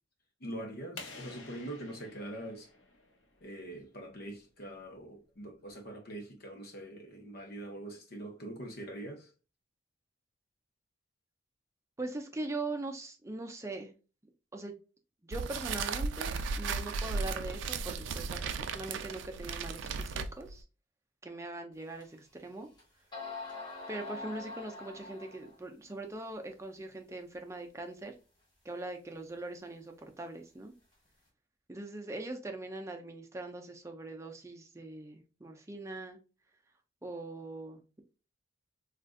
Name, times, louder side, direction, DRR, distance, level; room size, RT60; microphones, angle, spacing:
voice 1, 0.4-2.7 3.4-9.3 18.1-18.3, right 1 dB, 55° left, 0.9 m, -43 dB
sound 1, 1.0-3.6, left 3 dB, 85° left, 0.7 m, -50 dB
voice 2, 12.0-13.9 14.5-14.8 15.2-20.6 21.2-22.7 23.9-28.1 28.6-30.7 31.7-36.2 37.0-37.8, right 2 dB, 15° right, 0.5 m, -41 dB
sound 2, 15.3-20.6, right 4 dB, 75° right, 0.4 m, -35 dB
sound 3, 22.0-22.1 22.8-22.9 23.1-25.6, left 3 dB, 25° left, 1.3 m, -43 dB
3.8 x 2.5 x 2.3 m
head